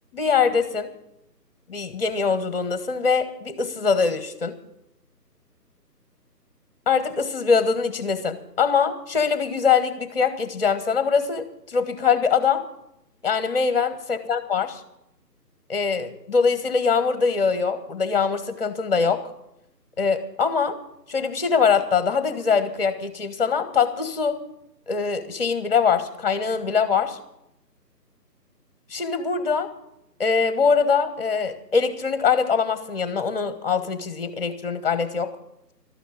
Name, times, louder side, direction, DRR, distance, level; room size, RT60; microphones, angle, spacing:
voice 1, 0.1-0.9 1.7-4.6 6.9-12.6 13.2-14.8 15.7-19.3 20.0-20.8 21.1-24.4 24.9-27.2 28.9-29.7 30.2-35.4, left 5 dB, 35° left, 11 dB, 1.5 m, -23 dB
13.0 x 9.0 x 8.7 m, 0.81 s
figure-of-eight pair, 150°, 49 cm